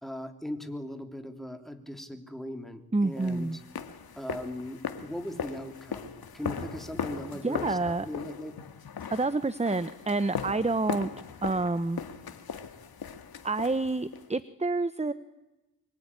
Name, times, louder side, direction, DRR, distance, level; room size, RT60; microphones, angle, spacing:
voice 1, 0.0-3.6 4.2-8.6, left 1 dB, ahead, 6 dB, 3.2 m, -39 dB
voice 2, 2.9-3.6 7.4-8.1 9.1-11.1 11.4-12.0 13.4-15.1, right 3 dB, 20° right, 14 dB, 1.0 m, -28 dB
sound 1, 3.2-14.3, left 7 dB, 75° left, 2.0 m, -39 dB
25.0 x 24.0 x 9.9 m, 1.0 s
cardioid pair, 70°, 37 cm